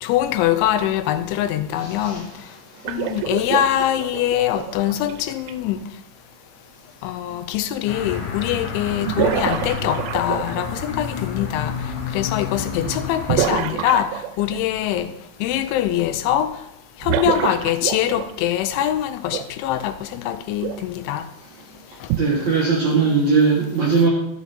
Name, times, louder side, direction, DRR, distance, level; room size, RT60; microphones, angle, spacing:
voice 1, 0.0-2.3 2.9-5.8 7.0-11.7 12.1-15.1 15.4-16.6 17.0-21.3 22.0-22.1, left 11 dB, 85° left, 3.1 m, -23 dB
voice 2, 1.8-2.2 12.8-12.9 22.2-24.1, right 4 dB, 70° right, 1.7 m, -19 dB
sound 1, 2.8-5.5 7.5-7.6 9.0-10.8 13.3-14.6 17.0-18.5 19.3-19.5 20.6-20.8 22.1-22.2, right 11 dB, 85° right, 3.0 m, -26 dB
sound 2, 7.9-13.3, left 6 dB, 65° left, 2.2 m, -30 dB
12.5 x 7.2 x 4.2 m
omnidirectional pair, 5.3 m